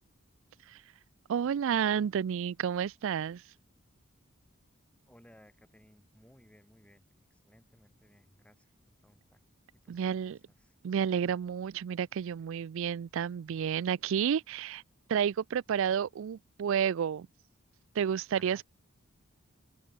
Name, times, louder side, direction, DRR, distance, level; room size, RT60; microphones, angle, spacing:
voice 1, 1.3-3.4 9.9-10.4 10.8-14.8 15.1-17.3 18.0-18.6, right 8 dB, 65° right, 0.3 m, -30 dB
voice 2, 5.1-8.7 9.0-9.4 9.7-10.8 18.4-18.6, equal, 5° left, 6.9 m, -61 dB
open air
head